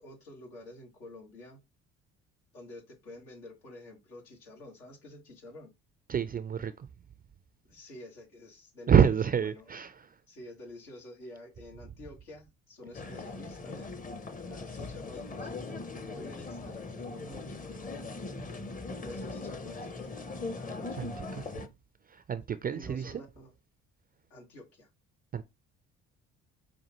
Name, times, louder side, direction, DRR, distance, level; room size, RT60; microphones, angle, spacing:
voice 1, 0.0-1.6 2.5-5.7 7.6-9.8 10.3-14.0 14.4-17.8 18.4-20.2 20.5-21.3 22.7-23.5 24.3-24.9, left 1 dB, 90° left, 1.6 m, -49 dB
voice 2, 6.1-6.9 8.9-10.1 21.0-21.7 22.1-23.2 25.3-25.4, right 8 dB, 30° right, 0.4 m, -28 dB
sound 1, 12.9-21.7, left 3 dB, 25° left, 0.7 m, -40 dB
5.2 x 2.4 x 2.9 m
hypercardioid pair, 65°, 32 cm